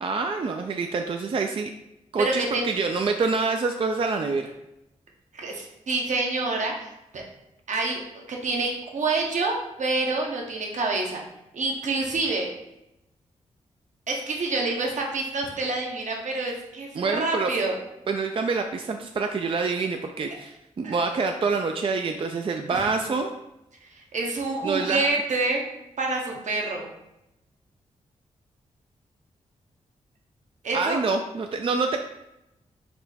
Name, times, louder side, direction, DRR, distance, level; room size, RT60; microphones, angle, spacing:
voice 1, 0.0-1.7 2.1-4.5 17.0-17.5 18.1-23.3 24.6-25.1 30.7-32.0, right 4 dB, 40° right, 5 dB, 0.4 m, -26 dB
voice 2, 2.2-2.7 5.3-7.2 7.7-8.0 8.3-11.2 11.5-12.5 14.1-17.8 20.8-21.0 22.7-23.1 23.8-25.6 26.0-26.9 30.6-31.0, right 3 dB, 60° right, 0 dB, 0.9 m, -27 dB
4.2 x 2.1 x 4.1 m, 0.88 s
supercardioid pair, 45°, 14 cm